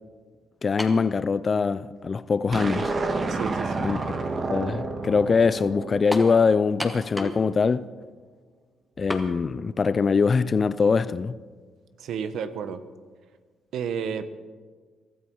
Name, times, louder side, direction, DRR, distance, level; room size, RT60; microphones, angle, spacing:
voice 1, 0.6-2.9 3.8-4.0 4.5-7.9 9.0-11.4, left 5 dB, 35° left, 0.5 m, -23 dB
sound 1, 0.8-1.1 2.0-2.1 6.1-6.4 6.8-7.4 7.7-7.8 9.1-9.3, left 1 dB, ahead, 1.9 m, -32 dB
sound 2, 2.5-6.9, right 3 dB, 40° right, 1.7 m, -30 dB
voice 2, 3.3-3.9 12.0-12.8 13.7-14.3, right 7 dB, 75° right, 1.1 m, -31 dB
23.0 x 13.0 x 4.7 m
cardioid pair, 90°, 0 cm